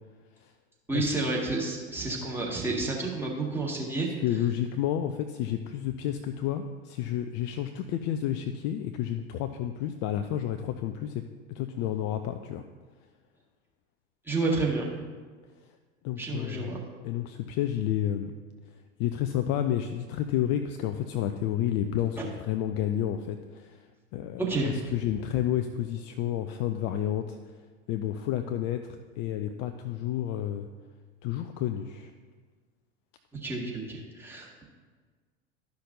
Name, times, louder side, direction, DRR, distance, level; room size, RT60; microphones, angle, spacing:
voice 1, 0.9-4.1 14.3-14.8 16.2-16.8 22.2-22.3 24.4-24.8 33.4-34.6, right 3 dB, 5° right, -3 dB, 1.8 m, -30 dB
voice 2, 4.2-11.2 11.5-12.6 16.0-16.7 17.0-18.3 19.0-23.8 24.1-27.4 27.9-30.7 31.2-32.1, left 11 dB, 35° left, 7 dB, 0.4 m, -30 dB
12.5 x 5.8 x 2.6 m, 1.5 s
figure-of-eight pair, 80°, 32 cm